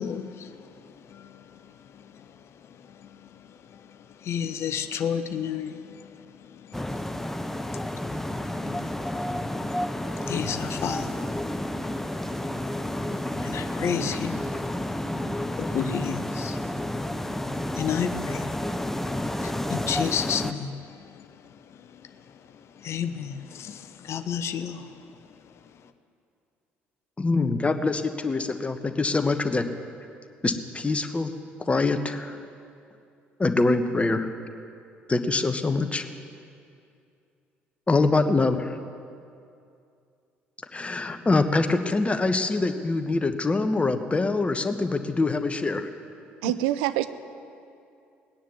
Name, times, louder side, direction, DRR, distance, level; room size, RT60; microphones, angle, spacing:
voice 1, 0.0-25.1 25.5-25.6, left 8 dB, 50° left, 9 dB, 0.9 m, -34 dB
sound 1, 6.7-20.5, left 1 dB, 5° left, 0.8 m, -30 dB
voice 2, 27.2-29.7 30.4-31.3 31.6-32.4 33.4-34.3 35.1-36.1 37.9-38.8 40.7-45.9 46.4-46.5, left 3 dB, 20° left, 8 dB, 1.2 m, -24 dB
voice 3, 46.4-47.1, right 15 dB, 70° right, 13 dB, 0.6 m, -25 dB
19.0 x 10.0 x 7.1 m, 2.5 s
figure-of-eight pair, 50°, 6 cm